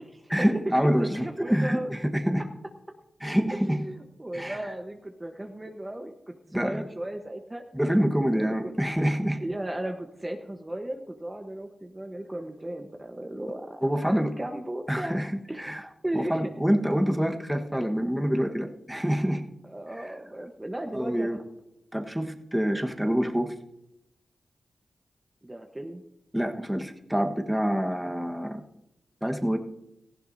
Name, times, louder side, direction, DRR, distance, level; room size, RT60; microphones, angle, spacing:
voice 1, 0.3-2.4 3.2-3.8 4.3-4.7 6.5-6.9 7.7-9.4 13.8-14.4 14.9-15.3 15.6-15.8 16.1-19.5 20.0-20.2 20.9-21.4 21.9-23.6 26.3-28.6 29.2-29.6, equal, 5° right, 4 dB, 1.3 m, -26 dB
voice 2, 1.0-1.9 3.6-7.6 8.3-8.7 9.4-15.1 15.5-15.7 16.0-16.5 19.6-21.3 25.4-26.0, right 1 dB, 20° right, 4 dB, 1.1 m, -36 dB
17.0 x 15.0 x 2.7 m, 0.84 s
cardioid pair, 55°, 0 cm